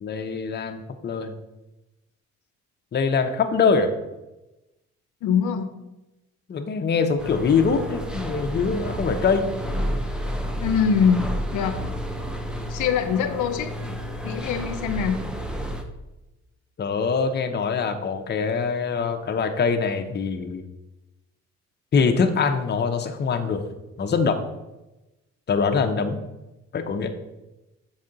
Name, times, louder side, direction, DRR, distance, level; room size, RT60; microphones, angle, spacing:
voice 1, 0.0-1.3 2.9-3.9 6.5-9.5 16.8-20.6 21.9-23.6 24.0-24.4 25.5-26.2 26.7-27.1, left 5 dB, 35° left, 6 dB, 0.7 m, -23 dB
voice 2, 5.2-5.7 10.6-11.2 11.5-11.8 12.7-13.7 14.2-15.2, left 7 dB, 80° left, 7 dB, 0.6 m, -23 dB
sound 1, 7.2-15.8, equal, 5° right, 0.6 m, -30 dB
6.2 x 4.2 x 3.8 m, 1.0 s
cardioid pair, 90°, 30 cm